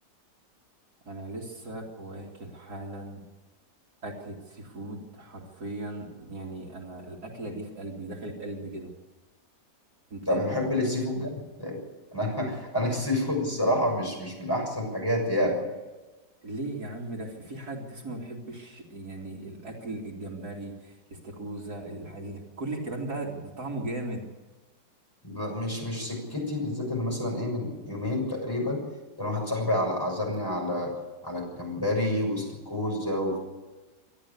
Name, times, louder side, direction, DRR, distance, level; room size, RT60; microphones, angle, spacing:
voice 1, 1.1-3.2 4.0-8.9 10.1-10.4 12.3-12.5 16.4-20.9 21.2-24.2, right 2 dB, 60° right, -1 dB, 3.3 m, -37 dB
voice 2, 10.3-11.8 12.1-15.6 25.2-28.8 29.2-30.9 31.2-33.4, left 1 dB, 10° left, -1 dB, 6.5 m, -28 dB
25.5 x 12.5 x 8.7 m, 1.2 s
omnidirectional pair, 1.9 m